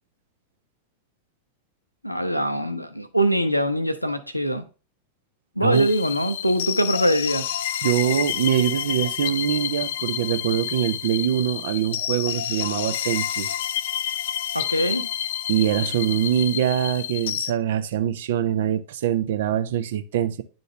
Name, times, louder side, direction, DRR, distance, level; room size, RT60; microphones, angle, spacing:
voice 1, 2.0-4.6 5.6-7.5 14.5-15.1, equal, 90° left, 0.7 m, -23 dB
sound 1, 5.7-17.5, left 11 dB, 55° left, 0.3 m, -29 dB
voice 2, 7.8-13.5 15.5-20.4, right 10 dB, 55° right, 0.6 m, -23 dB
10.0 x 3.9 x 3.3 m
figure-of-eight pair, 90°, 0 cm